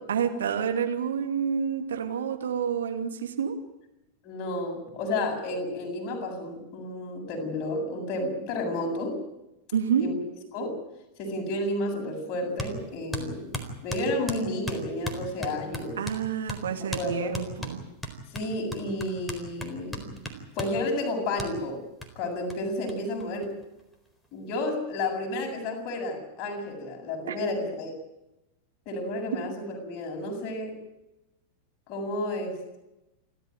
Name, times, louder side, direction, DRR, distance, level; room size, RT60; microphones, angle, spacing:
voice 1, 0.1-3.6 9.7-10.0 16.0-17.8 27.3-27.4, right 7 dB, 65° right, 5 dB, 2.7 m, -28 dB
voice 2, 4.2-9.2 10.0-10.1 10.5-10.8 11.2-16.0 16.8-17.3 18.3-20.2 20.6-21.8 22.2-23.5 24.3-27.9 28.9-30.8 31.9-32.8, left 1 dB, 35° left, 1 dB, 7.6 m, -31 dB
sound 1, 12.6-12.8 13.1-16.2 16.5-16.6 16.9-17.1 17.3-20.8 21.4-21.5 22.0-22.1 22.5-22.6 22.9-23.0 23.2-23.9, equal, 5° left, 4.2 m, -36 dB
29.0 x 13.0 x 9.2 m, 0.92 s
figure-of-eight pair, 90°, 0 cm